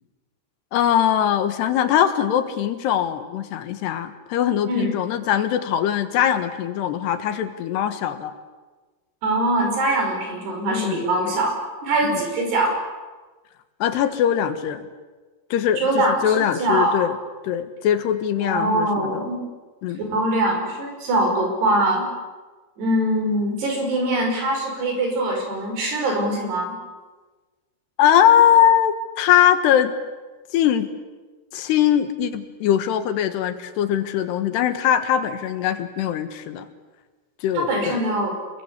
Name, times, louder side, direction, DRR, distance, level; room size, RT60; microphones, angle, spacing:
voice 1, 0.7-8.3 10.7-11.3 12.0-12.2 13.8-14.9 15.5-17.1 17.4-19.3 19.8-20.0 28.0-29.9 30.5-30.9 31.5-36.7 37.4-38.0, left 10 dB, 85° left, 9 dB, 3.6 m, -21 dB
voice 2, 9.2-11.5 11.8-12.8 15.8-17.0 18.4-19.4 20.1-22.1 22.8-26.8 37.5-38.3, right 1 dB, 80° right, 2 dB, 7.7 m, -22 dB
28.0 x 21.5 x 8.4 m, 1.3 s
omnidirectional pair, 4.7 m